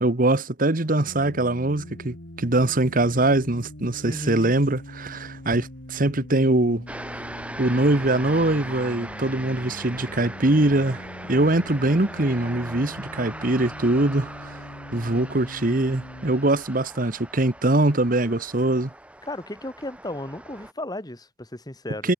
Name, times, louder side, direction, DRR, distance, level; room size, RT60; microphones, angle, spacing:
voice 1, 0.0-6.8 7.6-14.6 14.9-18.9 22.0-22.1, right 2 dB, 50° right, 1.4 m, -22 dB
sound 1, 1.0-16.3, equal, 65° left, 5.3 m, -42 dB
voice 2, 4.0-4.5 19.3-22.1, left 1 dB, 20° left, 2.5 m, -34 dB
sound 2, 6.9-20.7, right 1 dB, 5° right, 7.9 m, -40 dB
head